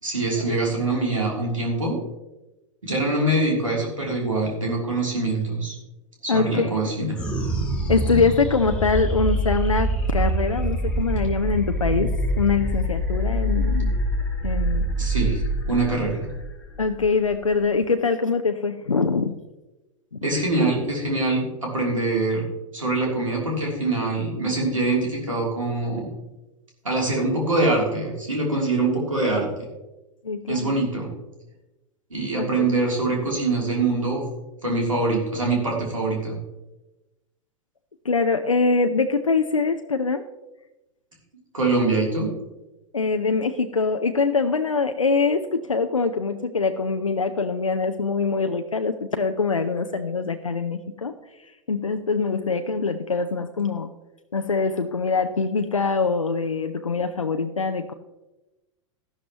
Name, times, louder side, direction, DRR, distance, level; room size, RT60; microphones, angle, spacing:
voice 1, 0.0-2.0 2.8-5.7 6.2-7.2 8.1-8.2 15.0-16.3 20.2-22.4 22.7-26.1 26.8-29.5 30.5-31.1 32.1-34.2 34.6-36.4 41.5-42.3, right 2 dB, 80° right, -2 dB, 3.1 m, -24 dB
voice 2, 6.3-6.7 7.9-12.1 12.4-13.9 14.4-14.9 16.8-19.3 20.1-20.2 30.2-30.8 32.3-32.7 38.0-40.2 42.9-51.2 51.7-53.9 54.3-57.9, left 4 dB, 80° left, 7 dB, 0.6 m, -23 dB
sound 1, 7.1-17.8, right 1 dB, 5° left, 2.3 m, -25 dB
13.0 x 12.0 x 3.0 m, 1.0 s
figure-of-eight pair, 95°, 17 cm